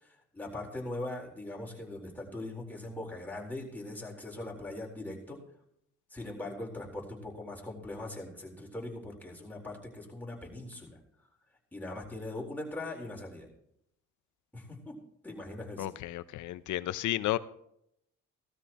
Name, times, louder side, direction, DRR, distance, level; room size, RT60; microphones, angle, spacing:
voice 1, 0.0-5.4 6.1-11.0 11.7-13.5 14.5-15.0 15.2-15.9, left 2 dB, 5° left, -2 dB, 4.1 m, -41 dB
voice 2, 15.8-17.4, left 14 dB, 80° left, 15 dB, 0.7 m, -32 dB
17.0 x 13.0 x 3.0 m, 0.75 s
cardioid pair, 90°, 30 cm